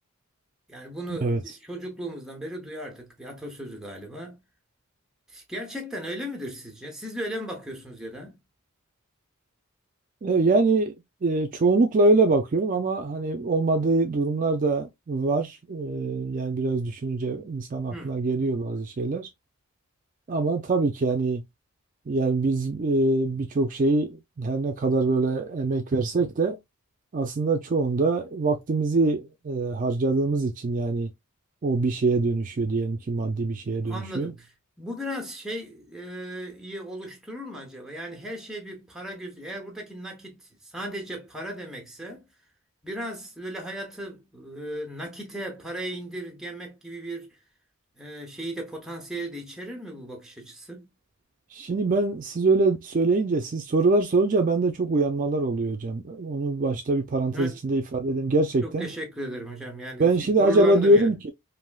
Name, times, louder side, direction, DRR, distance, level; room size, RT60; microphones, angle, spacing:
voice 1, 0.7-4.4 5.3-8.4 17.9-18.2 33.8-42.2 42.8-47.3 48.0-50.9 57.3-57.6 58.6-61.1, right 1 dB, ahead, 0.8 m, -36 dB
voice 2, 10.2-10.9 11.2-19.3 20.3-21.4 22.1-26.6 27.1-31.1 31.6-34.3 51.5-58.9 60.0-61.3, right 2 dB, 40° right, 0.4 m, -24 dB
3.4 x 2.5 x 2.3 m
head